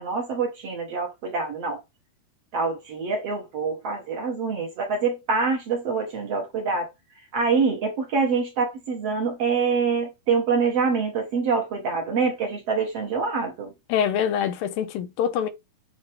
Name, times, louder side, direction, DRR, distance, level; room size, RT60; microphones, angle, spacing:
voice 1, 0.0-1.8 2.5-6.9 7.3-13.7, right 5 dB, 55° right, 2.1 m, -25 dB
voice 2, 13.9-15.5, left 8 dB, 80° left, 2.5 m, -25 dB
7.9 x 4.0 x 3.5 m
omnidirectional pair, 4.2 m